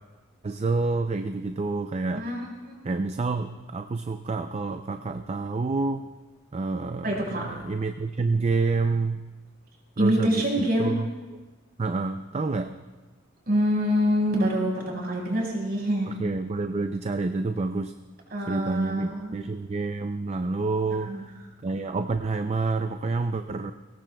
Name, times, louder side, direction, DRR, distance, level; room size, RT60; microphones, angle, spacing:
voice 1, 0.4-2.2 2.8-6.1 6.5-9.2 10.0-11.1 11.8-12.8 16.1-17.9 18.5-21.1 21.6-23.7, right 3 dB, 35° right, 7 dB, 0.4 m, -28 dB
voice 2, 2.2-2.7 7.0-7.4 10.0-10.9 13.5-16.1 18.3-19.4 21.1-21.2, equal, 50° right, -2 dB, 5.3 m, -25 dB
22.0 x 18.5 x 2.3 m, 1.3 s
head